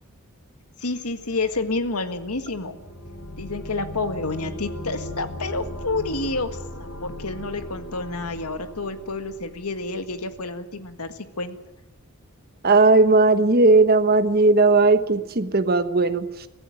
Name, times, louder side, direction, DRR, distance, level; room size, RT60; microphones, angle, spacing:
voice 1, 0.8-2.8 3.4-6.5 6.8-11.6, left 3 dB, 90° left, 9 dB, 1.8 m, -29 dB
sound 1, 1.2-10.0, left 1 dB, 65° left, 6.2 m, -38 dB
voice 2, 12.6-16.5, right 3 dB, 45° right, 10 dB, 1.2 m, -17 dB
23.5 x 16.0 x 9.2 m, 0.92 s
head